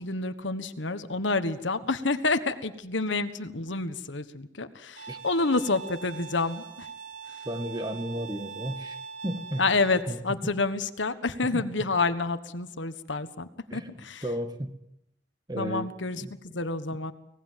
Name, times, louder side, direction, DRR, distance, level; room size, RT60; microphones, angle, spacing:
voice 1, 0.0-6.9 9.6-14.2 15.6-16.2 16.5-17.1, left 3 dB, 75° left, 11 dB, 1.5 m, -28 dB
Bowed string instrument, 5.0-10.0, right 6 dB, 75° right, 3.1 m, -42 dB
voice 2, 7.5-9.0 9.2-9.6 10.1-10.5 11.4-11.9 13.7-14.7 15.5-15.9 16.2-16.3, equal, 20° right, 7 dB, 1.9 m, -34 dB
24.5 x 19.0 x 7.6 m, 0.81 s
head